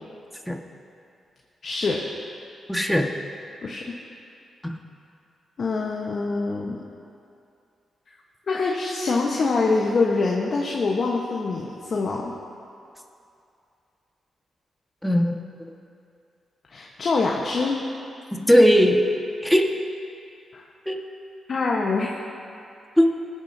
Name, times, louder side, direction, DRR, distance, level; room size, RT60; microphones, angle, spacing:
voice 1, 1.6-2.0 3.6-3.8 5.6-6.8 8.5-12.3 16.7-17.8 20.5-20.6 21.5-22.1, left 3 dB, 60° left, -2 dB, 1.2 m, -24 dB
voice 2, 2.7-3.1 4.6-4.7 15.0-15.4 18.5-19.0 19.4-19.7 20.9-21.0 23.0-23.2, equal, 5° left, 1 dB, 1.7 m, -18 dB
20.5 x 10.5 x 2.8 m, 2.5 s
supercardioid pair, 50°, 0 cm